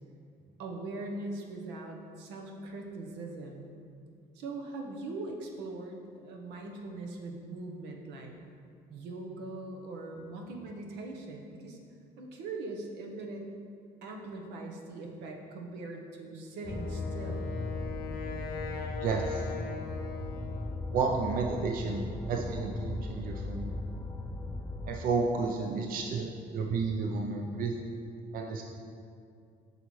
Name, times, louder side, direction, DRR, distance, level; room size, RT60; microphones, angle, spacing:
voice 1, 0.6-3.7 4.3-8.3 8.9-11.8 12.2-13.4 14.0-17.5, right 2 dB, 85° right, 1 dB, 0.9 m, -41 dB
Wind instrument woodwind instrument, 16.6-20.9, left 6 dB, 70° left, 0.7 m, -41 dB
sound 1, 16.6-25.0, left 2 dB, 15° left, 0.5 m, -38 dB
voice 2, 19.0-19.5 20.9-23.7 24.9-27.7 28.3-28.6, right 4 dB, 55° right, 1 dB, 0.6 m, -31 dB
7.9 x 5.6 x 3.1 m, 2.4 s
cardioid pair, 110°, 17 cm